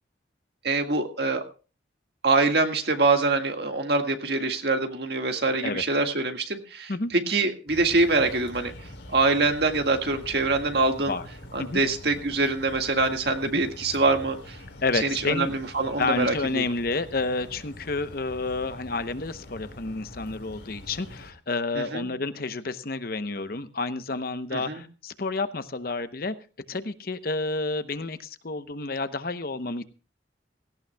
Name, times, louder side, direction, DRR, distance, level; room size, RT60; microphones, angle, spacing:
voice 1, 0.6-1.4 2.2-8.7 9.1-11.1 11.5-14.6 14.9-16.6 21.7-22.1 24.5-24.8, right 3 dB, 60° right, 5 dB, 1.8 m, -24 dB
sound 1, 7.7-21.3, left 1 dB, 70° left, 3.7 m, -44 dB
voice 2, 14.8-15.6 16.0-26.3 26.7-29.8, left 3 dB, 50° left, 11 dB, 0.8 m, -30 dB
17.5 x 17.0 x 2.3 m, 0.35 s
head